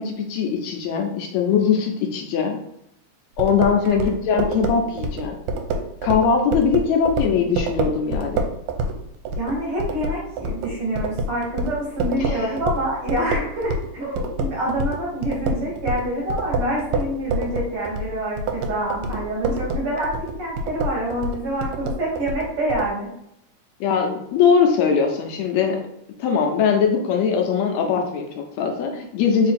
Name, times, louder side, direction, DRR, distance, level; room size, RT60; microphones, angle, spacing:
voice 1, 0.0-2.6 3.4-5.4 6.0-8.5 12.2-12.5 23.8-25.8 26.2-29.5, left 6 dB, 75° left, 3 dB, 1.8 m, -21 dB
sound 1, 3.4-13.9 14.2-22.9, right 2 dB, 80° right, 1.9 m, -27 dB
voice 2, 9.4-23.1, right 1 dB, 60° right, -4 dB, 1.7 m, -26 dB
4.5 x 2.7 x 4.1 m, 0.79 s
omnidirectional pair, 3.3 m